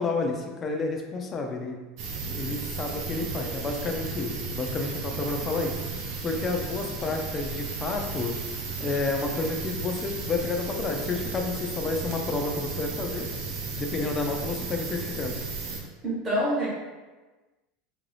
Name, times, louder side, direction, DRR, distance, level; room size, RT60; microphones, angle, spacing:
voice 1, 0.0-1.8 2.3-5.8 6.2-8.3 8.8-13.3 13.7-15.4, left 3 dB, 20° left, 2 dB, 0.4 m, -30 dB
sound 1, 2.0-15.8, right 4 dB, 50° right, 0.5 m, -34 dB
voice 2, 16.0-16.7, equal, 20° right, -10 dB, 0.9 m, -26 dB
2.8 x 2.6 x 3.2 m, 1.2 s
supercardioid pair, 160°, 0 cm